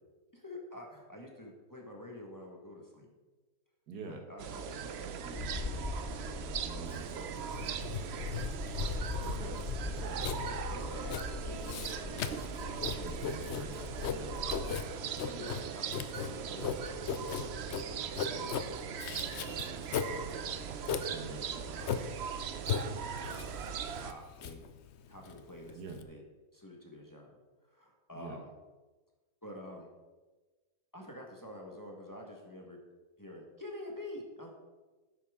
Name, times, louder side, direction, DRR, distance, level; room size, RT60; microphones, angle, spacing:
voice 1, 0.3-3.1 4.0-6.4 6.7-9.1 10.1-12.3 13.9-14.2 15.2-17.7 18.2-18.6 19.0-21.9 22.6-22.7 23.2-23.6 24.0-24.7 25.1-26.2 26.5-27.4 27.6-28.5 29.4-29.9 30.9-32.8 33.2-34.5, left 1 dB, 15° left, 0 dB, 1.3 m, -48 dB
voice 2, 3.9-4.2 6.6-6.9 9.2-10.2 13.0-14.3 21.1-21.4 25.7-26.0 28.1-28.4, right 3 dB, 85° right, 5 dB, 1.7 m, -46 dB
sound 1, 4.4-24.1, right 7 dB, 60° right, 0.7 m, -40 dB
sound 2, 5.3-14.7, left 3 dB, 35° left, 1.1 m, -41 dB
Writing, 6.9-26.0, left 7 dB, 60° left, 0.8 m, -38 dB
11.0 x 8.7 x 3.6 m, 1.2 s
omnidirectional pair, 1.6 m